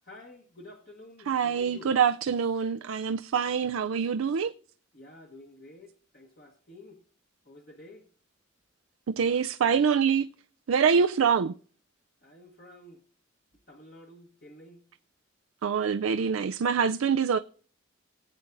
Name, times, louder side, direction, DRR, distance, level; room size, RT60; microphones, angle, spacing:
voice 1, 0.0-2.0 4.9-7.0 7.4-8.1 12.2-13.0 13.7-14.8, left 2 dB, 45° left, 1.3 m, -50 dB
voice 2, 1.3-4.5 9.1-10.3 10.7-11.5 15.6-17.4, right 6 dB, 90° right, 0.4 m, -25 dB
18.0 x 8.3 x 2.6 m
head